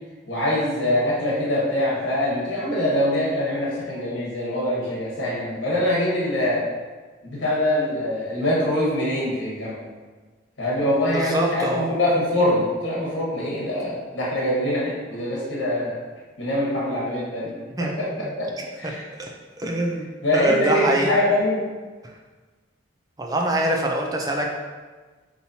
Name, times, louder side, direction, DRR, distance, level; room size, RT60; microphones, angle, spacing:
voice 1, 0.3-6.6 7.2-9.8 10.6-16.0 16.4-17.5 17.8-18.5 18.8-19.1 20.2-21.6, left 1 dB, 75° left, -5 dB, 1.2 m, -24 dB
voice 2, 10.8-11.9 17.8-17.9 18.8-18.9 19.2-19.3 19.6-20.1 20.3-21.1 23.2-24.6, right 1 dB, 20° right, 1 dB, 0.4 m, -24 dB
5.4 x 2.9 x 2.8 m, 1.4 s
head